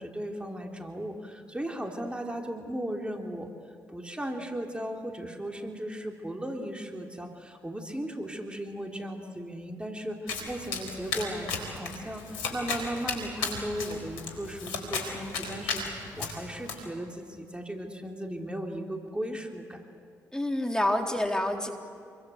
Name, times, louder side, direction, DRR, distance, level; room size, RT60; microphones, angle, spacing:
voice 1, 0.0-3.5 3.9-19.8, right 1 dB, 10° right, 2 dB, 3.5 m, -36 dB
Domestic sounds home sounds, 10.3-16.7, left 4 dB, 85° left, 4.3 m, -35 dB
voice 2, 20.3-21.7, left 1 dB, 10° left, 2 dB, 3.7 m, -27 dB
28.0 x 23.0 x 8.0 m, 2.3 s
hypercardioid pair, 45°, 8 cm